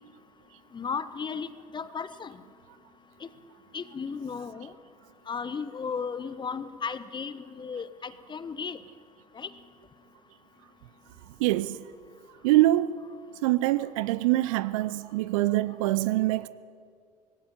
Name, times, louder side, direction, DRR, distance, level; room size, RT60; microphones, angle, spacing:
voice 1, 0.7-2.4 3.2-3.3 3.7-4.7 5.3-8.8 9.3-9.5, left 5 dB, 25° left, 1.1 m, -35 dB
voice 2, 11.4-11.8 12.4-12.9 13.4-16.5, right 16 dB, 60° right, 0.7 m, -24 dB
19.0 x 16.0 x 9.7 m
figure-of-eight pair, 65°, 19 cm